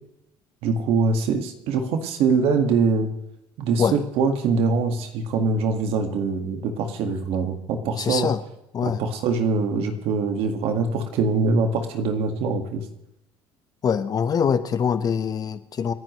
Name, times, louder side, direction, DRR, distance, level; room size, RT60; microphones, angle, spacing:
voice 1, 0.6-3.1 3.6-8.3 8.8-12.8, right 4 dB, 75° right, 5 dB, 2.0 m, -23 dB
voice 2, 8.0-8.4 8.7-9.0 13.8-15.9, left 7 dB, 40° left, 11 dB, 1.2 m, -24 dB
28.5 x 10.5 x 3.2 m, 0.84 s
cardioid pair, 110°, 10 cm